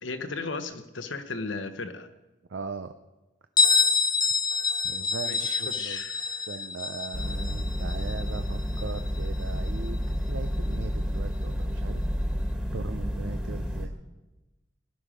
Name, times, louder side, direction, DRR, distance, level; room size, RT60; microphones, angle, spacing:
voice 1, 0.0-2.1 5.2-6.5, left 4 dB, 70° left, 9 dB, 1.2 m, -36 dB
voice 2, 2.5-2.9 4.8-6.0 6.5-12.0 12.7-13.9, right 4 dB, 70° right, 8 dB, 0.6 m, -39 dB
Bell, 3.6-9.1, left 4 dB, 20° left, 0.7 m, -26 dB
sound 1, 7.1-13.9, equal, 5° right, 1.7 m, -30 dB
20.5 x 11.5 x 5.1 m, 1.1 s
head